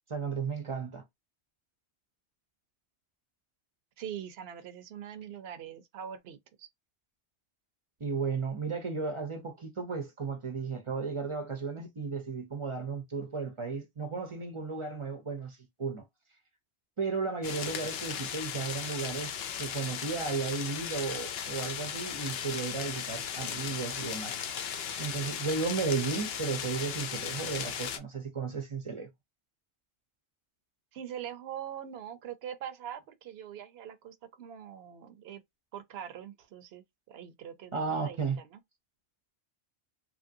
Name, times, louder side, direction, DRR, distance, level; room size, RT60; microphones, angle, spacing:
voice 1, 0.1-1.0 8.0-16.0 17.0-24.4 25.0-29.1 37.7-38.4, right 4 dB, 40° right, 0.5 m, -34 dB
voice 2, 4.0-6.7 30.9-35.4 35.7-38.6, right 9 dB, 70° right, 0.8 m, -43 dB
sound 1, 17.4-28.0, left 8 dB, 65° left, 0.8 m, -37 dB
2.9 x 2.5 x 2.6 m
omnidirectional pair, 1.2 m